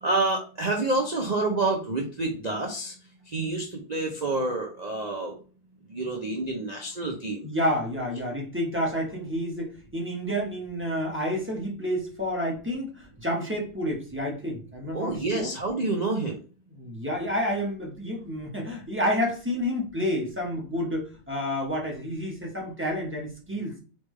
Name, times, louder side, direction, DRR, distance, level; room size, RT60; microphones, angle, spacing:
voice 1, 0.0-2.9 3.3-5.4 5.9-7.5 14.9-16.4, right 2 dB, 75° right, 0 dB, 0.4 m, -28 dB
voice 2, 7.4-15.5 16.7-23.7, equal, 10° right, -2 dB, 0.8 m, -29 dB
4.2 x 3.4 x 3.2 m, 0.38 s
omnidirectional pair, 1.9 m